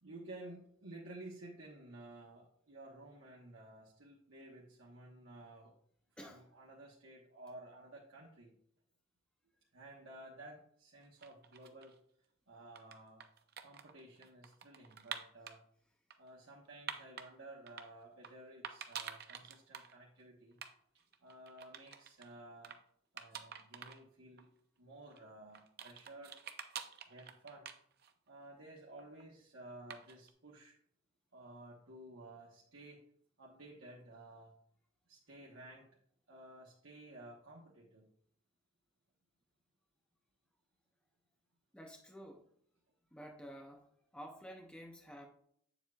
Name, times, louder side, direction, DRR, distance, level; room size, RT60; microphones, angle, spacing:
voice 1, 0.0-5.7 6.2-8.5 9.7-11.9 12.5-13.2 13.6-15.6 16.2-20.6 21.2-22.8 23.1-24.5 24.8-26.4 27.1-27.7 28.3-30.7 31.3-33.0 33.4-34.5 35.1-35.9 36.3-38.1, right 1 dB, 75° right, -3 dB, 1.2 m, -54 dB
sound 1, 11.0-12.0 12.5-15.6 16.1-17.3 17.7-18.3 18.6-19.9 20.2-20.3 20.5-20.7 21.0-22.3 22.6-22.8 23.2-24.0 24.4-24.5 25.1-28.3 28.6-29.2 29.9-30.3, right 7 dB, 50° right, 0.6 m, -48 dB
voice 2, 41.7-42.4 43.1-43.9 44.1-45.3, equal, 5° left, 2 dB, 0.6 m, -51 dB
8.2 x 7.2 x 2.4 m, 0.67 s
head